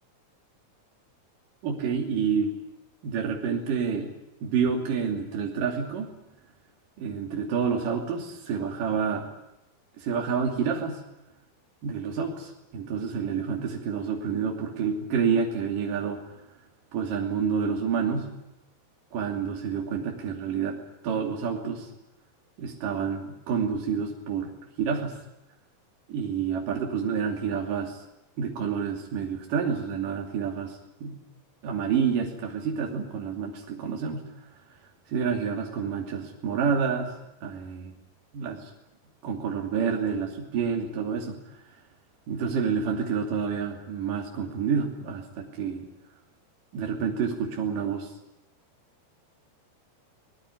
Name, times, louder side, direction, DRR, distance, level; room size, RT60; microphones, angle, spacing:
voice 1, 1.6-2.5 3.0-4.1 4.4-6.1 7.0-9.3 10.0-11.0 11.8-16.2 16.9-18.3 19.1-20.8 21.0-21.9 22.6-24.5 24.8-25.2 26.1-28.0 28.4-31.2 31.6-34.3 35.1-37.1 37.4-37.9 38.3-38.6 39.2-41.4 42.3-45.9 46.7-48.1, right 6 dB, 75° right, 1 dB, 4.4 m, -28 dB
23.5 x 21.0 x 9.6 m, 0.89 s
omnidirectional pair, 3.9 m